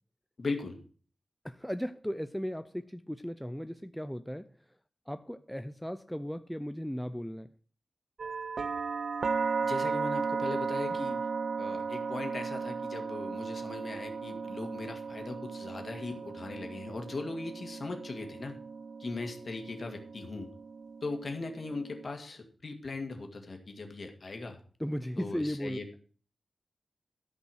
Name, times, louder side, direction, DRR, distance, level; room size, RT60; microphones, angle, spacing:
voice 1, 0.4-0.8 9.6-11.2 11.6-18.6 19.0-20.5 21.0-24.6 25.2-25.9, left 3 dB, 45° left, 2.0 m, -39 dB
voice 2, 1.4-4.5 5.1-7.5 24.8-25.8, equal, ahead, 0.4 m, -36 dB
sound 1, 8.2-22.1, right 5 dB, 60° right, 0.5 m, -36 dB
13.5 x 5.4 x 6.3 m
wide cardioid pair, 140°, 0 cm